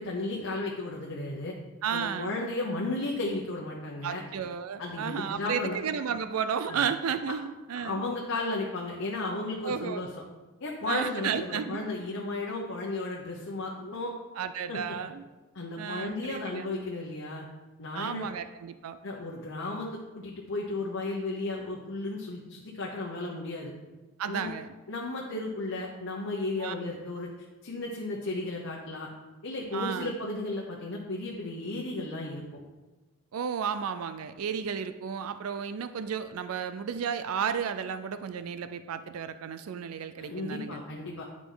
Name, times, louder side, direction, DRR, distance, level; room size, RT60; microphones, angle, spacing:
voice 1, 0.0-1.5 1.9-4.2 4.8-5.8 6.7-6.8 7.3-7.4 7.7-10.1 10.6-14.1 14.7-15.0 15.5-17.4 17.8-18.3 19.0-23.7 24.3-24.5 24.9-27.3 27.6-29.1 29.4-32.6 40.2-41.2, left 2 dB, 65° left, -2 dB, 1.0 m, -34 dB
voice 2, 1.8-2.4 4.0-8.0 9.6-10.1 10.9-11.8 14.4-15.2 15.8-16.7 17.9-19.0 24.2-24.7 26.6-26.7 29.7-30.1 33.3-40.8, right 7 dB, 85° right, 11 dB, 0.4 m, -33 dB
10.0 x 4.8 x 3.9 m, 1.2 s
head